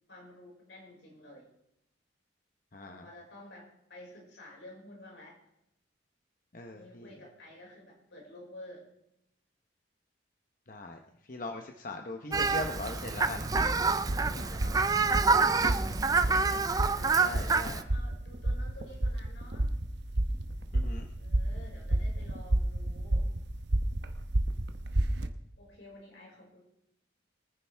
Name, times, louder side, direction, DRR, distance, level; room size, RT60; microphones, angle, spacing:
voice 1, 0.1-1.5 2.8-5.4 6.7-8.9 14.0-19.7 21.2-23.3 25.6-26.6, left 1 dB, 75° left, -2 dB, 5.5 m, -51 dB
voice 2, 2.7-3.1 6.5-7.1 10.7-11.0 11.3-13.5 14.3-14.5 17.2-17.8 20.7-21.0, left 2 dB, 45° left, 4 dB, 0.9 m, -40 dB
Fowl, 12.3-17.8, right 4 dB, 20° right, 0.4 m, -27 dB
sound 1, 13.4-25.3, right 1 dB, 65° right, 1.0 m, -31 dB
23.0 x 10.0 x 3.5 m, 0.83 s
head